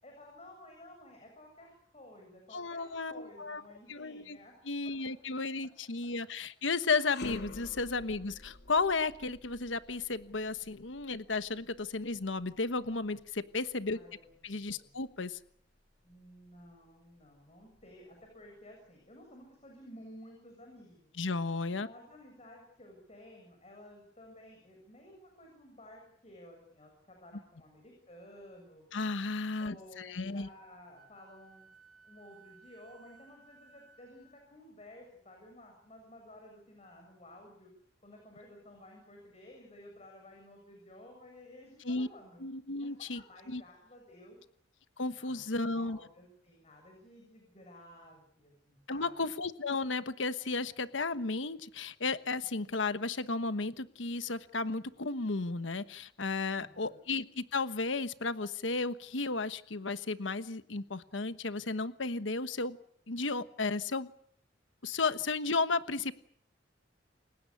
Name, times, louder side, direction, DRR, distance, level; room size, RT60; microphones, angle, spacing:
voice 1, 0.0-4.5 8.1-8.2 13.8-14.4 14.7-15.0 16.0-21.1 21.8-28.8 29.6-31.7 32.0-37.7 38.0-42.4 42.8-44.4 45.1-49.2 56.5-57.0, left 1 dB, 35° left, 2 dB, 7.1 m, -54 dB
voice 2, 2.5-3.6 3.9-4.4 4.7-14.0 14.4-15.4 21.2-21.9 28.9-30.5 41.8-42.1 42.4-43.2 43.5-43.6 45.0-46.0 48.9-62.8 63.1-64.1 64.8-66.1, left 3 dB, 90° left, 13 dB, 1.2 m, -34 dB
sound 1, 6.9-16.1 16.6-16.7 17.6-18.5, left 2 dB, 60° left, 2.9 m, -50 dB
Wind instrument woodwind instrument, 30.9-34.4, right 5 dB, 45° right, 3.9 m, -60 dB
29.0 x 16.5 x 8.4 m, 0.66 s
head